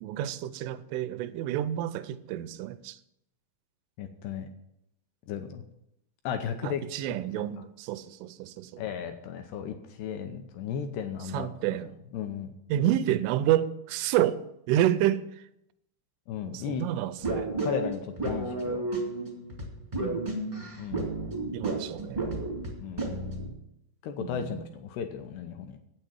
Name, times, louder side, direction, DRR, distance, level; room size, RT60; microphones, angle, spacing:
voice 1, 0.0-3.0 6.6-8.8 11.3-11.9 12.7-14.4 14.7-15.4 16.5-17.5 20.0-20.3 21.5-22.2 24.2-24.6, right 12 dB, 85° right, 3.1 m, -29 dB
voice 2, 4.0-4.5 5.3-5.6 6.2-6.8 7.4-7.5 8.8-11.5 12.1-12.8 16.3-16.9 17.6-18.8 20.8-21.1 22.8-23.2 24.0-25.8, left 8 dB, 80° left, 2.4 m, -35 dB
sound 1, 17.2-23.5, right 2 dB, 30° right, 0.6 m, -32 dB
9.1 x 8.9 x 7.2 m
omnidirectional pair, 5.6 m